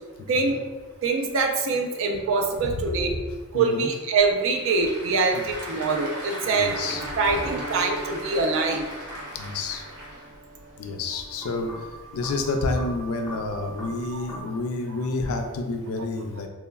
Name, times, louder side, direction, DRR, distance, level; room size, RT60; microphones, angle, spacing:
voice 1, 0.3-0.6 1.0-3.2 3.5-6.8 7.2-8.8 14.1-14.3, right 4 dB, 65° right, 3 dB, 0.4 m, -24 dB
voice 2, 2.6-3.2 3.5-3.9 5.3-5.4 6.5-7.0 9.3-9.8 10.8-16.5, left 3 dB, 80° left, 5 dB, 0.3 m, -29 dB
Applause / Crowd, 4.2-10.4, equal, 90° right, 1.0 m, -38 dB
sound 1, 6.6-14.4, right 1 dB, ahead, 0.6 m, -40 dB
3.2 x 2.1 x 2.2 m, 1.2 s
head